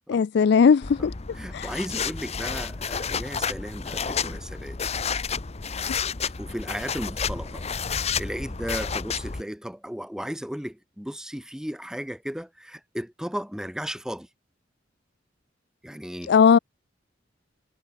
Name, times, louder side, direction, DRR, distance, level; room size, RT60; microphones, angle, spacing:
voice 1, 0.1-1.1 1.5-1.7 16.3-16.6, left 6 dB, 65° left, 0.4 m, -18 dB
sound 1, 0.8-9.4, left 6 dB, 35° left, 0.8 m, -31 dB
voice 2, 1.0-4.8 6.4-7.6 7.9-14.3 15.8-16.3, equal, 5° right, 1.0 m, -35 dB
head